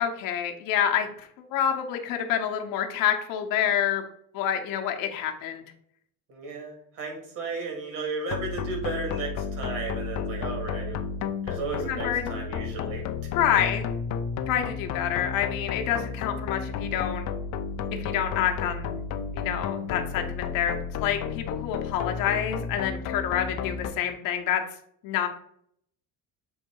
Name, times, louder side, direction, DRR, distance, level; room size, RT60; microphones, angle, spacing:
voice 1, 0.0-4.0 4.3-5.6 11.8-12.3 13.3-13.9 14.5-17.2 18.0-18.9 19.3-20.8 21.0-24.6 25.0-25.3, left 9 dB, 70° left, 4 dB, 0.9 m, -27 dB
voice 2, 6.3-11.0 11.4-13.1, right 3 dB, 65° right, 1 dB, 2.4 m, -34 dB
sound 1, 8.3-23.9, left 6 dB, 50° left, 0.5 m, -32 dB
6.4 x 3.2 x 4.6 m, 0.68 s
cardioid pair, 165°, 34 cm